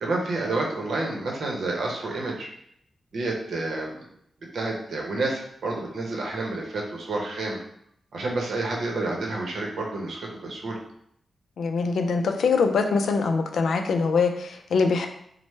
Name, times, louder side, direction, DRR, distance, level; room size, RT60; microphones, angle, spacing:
voice 1, 0.0-2.5 3.1-4.0 4.5-7.6 8.1-10.8, right 2 dB, 75° right, -1 dB, 0.7 m, -29 dB
voice 2, 11.6-15.1, left 4 dB, 90° left, 5 dB, 0.3 m, -23 dB
3.2 x 2.0 x 3.1 m, 0.72 s
wide cardioid pair, 120°, 0 cm